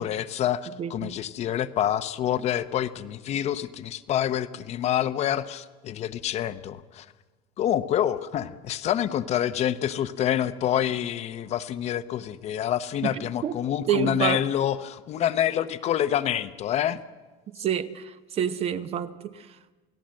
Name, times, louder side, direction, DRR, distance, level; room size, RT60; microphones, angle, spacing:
voice 1, 0.0-7.1 7.6-17.0 17.6-17.7, left 10 dB, 35° left, 0.8 m, -27 dB
voice 2, 0.8-1.1 13.0-13.6 13.9-14.4 17.6-19.6, right 9 dB, 30° right, 0.8 m, -28 dB
28.5 x 17.5 x 7.6 m
cardioid pair, 160°, 19 cm